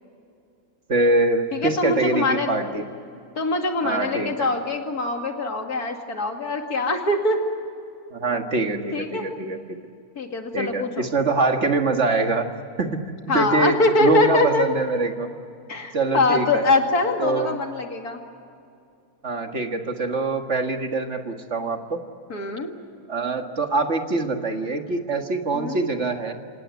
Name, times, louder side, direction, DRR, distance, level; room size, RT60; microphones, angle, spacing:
voice 1, 0.9-2.8 3.8-4.5 8.1-9.8 10.5-12.5 12.8-15.3 15.9-16.6 17.2-17.6 19.2-22.0 23.1-26.3, right 3 dB, 50° right, 5 dB, 2.0 m, -24 dB
voice 2, 1.5-2.6 3.4-7.4 8.9-9.3 10.2-11.1 13.3-14.7 15.7-18.2 22.3-22.7 25.5-25.8, left 2 dB, 85° left, 3 dB, 3.0 m, -23 dB
27.0 x 18.5 x 9.5 m, 2.4 s
omnidirectional pair, 1.6 m